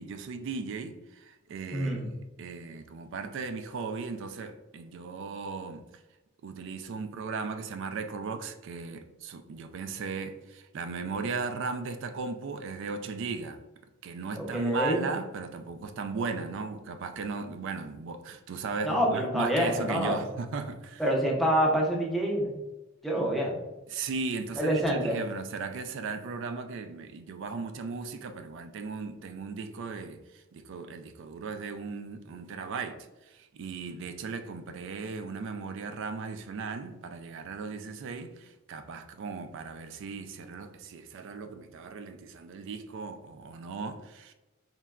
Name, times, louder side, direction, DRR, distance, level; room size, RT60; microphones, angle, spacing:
voice 1, 0.0-5.8 6.4-13.6 14.0-21.0 23.9-44.3, right 4 dB, 60° right, 0.3 m, -37 dB
voice 2, 1.7-2.1 14.4-15.0 18.8-20.2 21.0-22.6 23.0-23.6 24.6-25.2, equal, ahead, 0.5 m, -27 dB
3.8 x 2.2 x 2.2 m
head